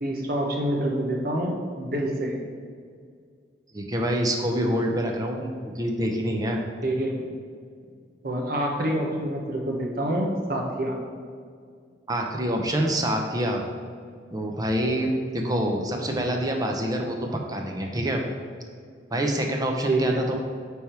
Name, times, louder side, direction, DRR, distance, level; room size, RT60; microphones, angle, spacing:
voice 1, 0.0-2.4 6.8-7.3 8.2-11.0 15.0-15.1 19.9-20.2, right 1 dB, 55° right, 1 dB, 1.1 m, -27 dB
voice 2, 3.7-6.6 12.1-13.6 14.3-18.2 19.1-20.4, right 1 dB, 20° right, 2 dB, 0.8 m, -26 dB
9.2 x 3.6 x 4.5 m, 2.1 s
head